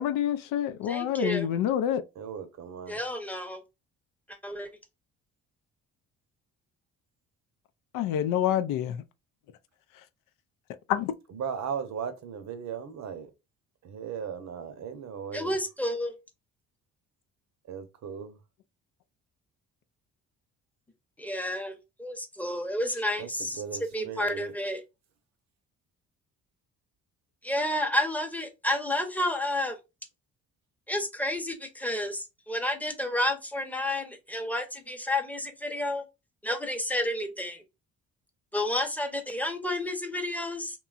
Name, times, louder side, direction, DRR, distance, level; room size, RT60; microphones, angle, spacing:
voice 1, 0.0-2.0 7.9-9.0 10.9-11.1, left 10 dB, 70° left, 0.5 m, -27 dB
voice 2, 0.9-1.5 2.9-3.6 4.4-4.7 15.3-16.1 21.2-23.6 23.9-24.8 27.4-29.8 30.9-36.0 36.4-37.6 38.5-40.7, left 1 dB, 5° left, 0.8 m, -30 dB
voice 3, 2.2-3.0 11.3-13.3 13.8-15.6 17.7-18.4 23.2-24.5, right 7 dB, 55° right, 0.7 m, -37 dB
2.9 x 2.3 x 2.3 m
supercardioid pair, 60°, 34 cm